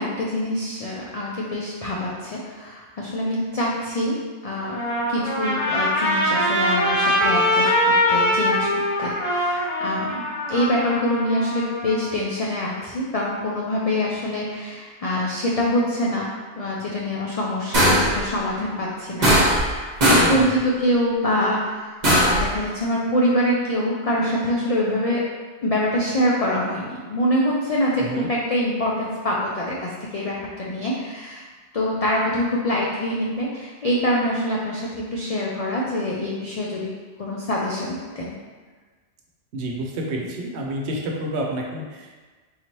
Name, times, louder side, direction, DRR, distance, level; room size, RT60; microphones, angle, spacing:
voice 1, 0.0-4.8 5.1-8.7 9.0-10.2 10.5-16.3 16.6-19.3 19.6-25.2 25.6-31.4 31.7-36.9 37.2-38.3, left 1 dB, 70° left, -4 dB, 0.3 m, -25 dB
Trumpet, 4.6-12.0, left 1 dB, 30° left, 0.7 m, -22 dB
sound 1, 17.7-18.2 19.2-19.7 20.0-20.4 22.0-22.5, equal, 40° right, 1.0 m, -17 dB
voice 2, 20.0-20.5 28.0-28.3 39.5-42.2, right 1 dB, 70° right, -1 dB, 0.9 m, -29 dB
3.9 x 2.9 x 3.0 m, 1.4 s
omnidirectional pair, 1.2 m